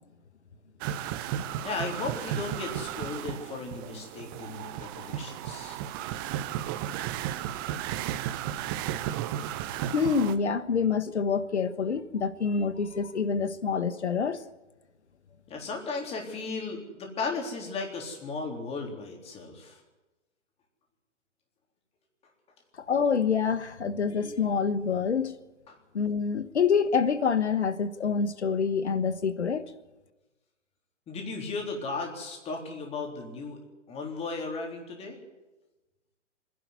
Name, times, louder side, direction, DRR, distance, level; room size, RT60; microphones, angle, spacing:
sound 1, 0.8-10.4, right 11 dB, 20° right, 0.6 m, -34 dB
voice 1, 1.6-5.8 15.5-19.8 25.7-25.8 31.1-33.6 33.9-35.2, left 3 dB, 15° left, 3.7 m, -35 dB
voice 2, 9.9-14.4 22.9-25.4 25.9-29.7, left 6 dB, 65° left, 1.5 m, -26 dB
25.5 x 11.0 x 9.7 m
figure-of-eight pair, 120°, 36 cm